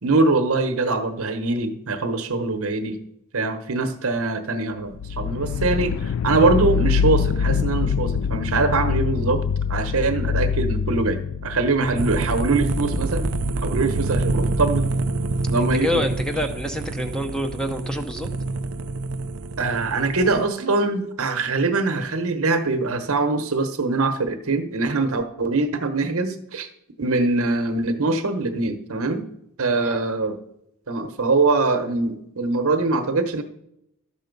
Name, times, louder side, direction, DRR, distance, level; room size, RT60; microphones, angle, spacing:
voice 1, 0.0-3.0 3.3-9.4 9.7-13.3 13.6-14.9 15.5-16.0 19.6-26.7 27.0-29.2 29.6-30.4 30.9-33.4, right 3 dB, 65° right, 8 dB, 1.1 m, -23 dB
sound 1, 4.9-14.8, left 6 dB, 65° left, 0.3 m, -25 dB
sound 2, 12.0-20.4, right 2 dB, 85° right, 0.6 m, -26 dB
voice 2, 15.6-18.3 29.7-30.0, equal, 5° left, 5 dB, 0.8 m, -27 dB
12.0 x 7.1 x 5.3 m, 0.81 s
head